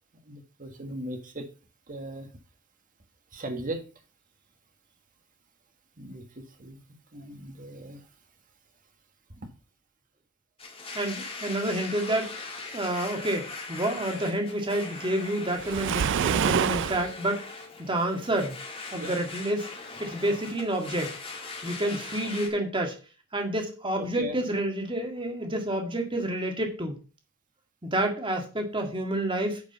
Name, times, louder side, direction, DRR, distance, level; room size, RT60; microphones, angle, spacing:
voice 1, 0.3-1.5 1.9-2.3 3.3-3.8 6.0-6.2 6.6-6.8 7.1-8.0 18.9-19.1 24.0-24.4, right 1 dB, 40° right, 5 dB, 1.6 m, -37 dB
Domestic sounds home sounds, 10.6-22.5, left 3 dB, 25° left, 2.0 m, -40 dB
voice 2, 10.9-12.5 12.7-17.5 17.8-18.5 18.9-19.7 20.0-21.1 21.6-22.9 23.3-26.9 27.8-29.6, right 1 dB, 25° right, 3 dB, 2.0 m, -29 dB
Waves surf, 15.6-17.1, right 8 dB, 55° right, 0.4 m, -26 dB
9.6 x 5.1 x 5.5 m, 0.34 s
head